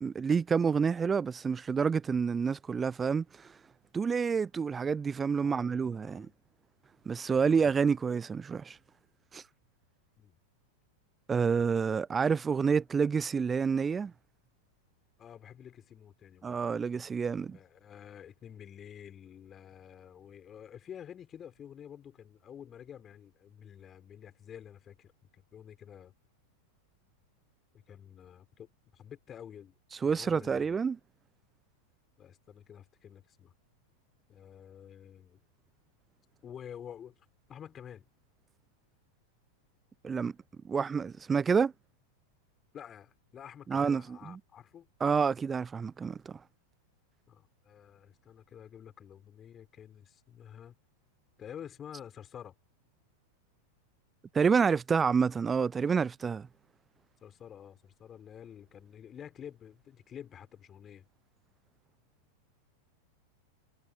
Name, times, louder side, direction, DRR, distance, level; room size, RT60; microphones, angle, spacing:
voice 1, 0.0-3.5 3.9-6.3 7.1-8.8 9.3-9.4 11.3-14.1 16.4-17.6 30.0-31.0 40.0-40.3 40.6-41.7 43.7-44.4 45.0-46.4 54.3-56.5, right 6 dB, 15° right, 0.6 m, -28 dB
voice 2, 5.4-6.3 7.3-7.7 10.2-10.4 15.2-16.6 17.5-26.1 27.7-28.7 28.9-29.8 30.0-30.7 32.2-33.5 34.3-35.4 36.4-37.2 37.5-38.1 42.7-44.9 47.3-50.8 51.4-52.5 57.2-61.1, left 9 dB, 25° left, 5.7 m, -49 dB
figure-of-eight pair, 90°, 0 cm